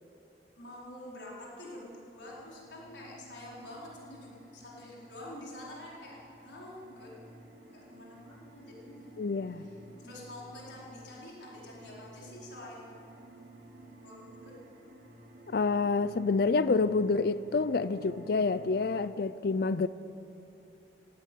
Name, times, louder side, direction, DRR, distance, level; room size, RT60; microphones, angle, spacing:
voice 1, 0.6-7.1 7.7-9.2 9.6-12.9 13.8-14.6, left 1 dB, 90° left, -5 dB, 4.5 m, -47 dB
sound 1, 2.2-19.0, right 1 dB, 85° right, 2.9 m, -53 dB
voice 2, 9.2-9.7 15.5-19.9, left 4 dB, 60° left, 15 dB, 0.5 m, -28 dB
18.0 x 16.0 x 9.3 m, 2.8 s
head